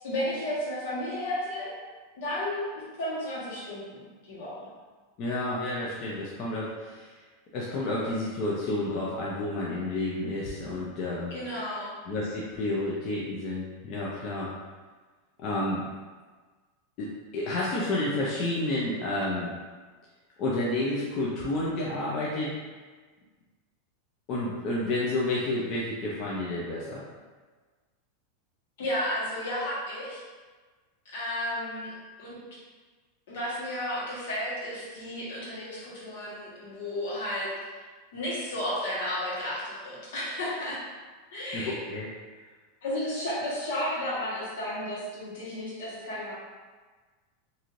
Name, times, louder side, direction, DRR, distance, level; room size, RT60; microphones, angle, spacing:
voice 1, 0.0-1.7 2.2-4.7 11.3-11.9 28.8-30.2 31.0-31.9 32.2-32.4 33.3-37.5 38.1-40.8 41.3-41.8 42.8-46.4, left 1 dB, 75° left, -7 dB, 1.3 m, -33 dB
voice 2, 5.2-7.1 7.5-11.3 12.1-14.5 15.4-15.9 17.0-19.5 20.4-22.6 24.3-27.0 35.6-35.7 41.5-42.1, left 2 dB, 45° left, -5 dB, 0.5 m, -30 dB
3.0 x 2.6 x 2.5 m, 1.4 s
supercardioid pair, 145°, 0 cm